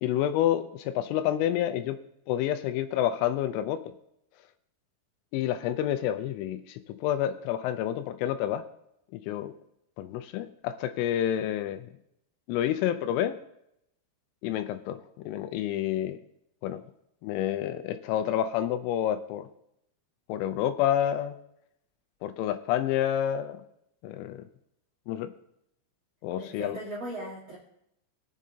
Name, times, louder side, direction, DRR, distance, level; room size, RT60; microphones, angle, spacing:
voice 1, 0.0-2.0 2.3-3.9 5.3-8.6 9.1-9.5 10.0-11.9 12.5-13.4 14.4-15.0 15.3-16.2 16.6-16.8 17.2-19.5 20.3-21.3 22.2-23.6 24.0-24.4 25.1-25.3 26.2-26.8, left 11 dB, 85° left, 9 dB, 3.0 m, -29 dB
voice 2, 26.4-27.6, right 1 dB, 70° right, -5 dB, 1.5 m, -38 dB
20.5 x 7.4 x 2.8 m, 0.77 s
omnidirectional pair, 5.7 m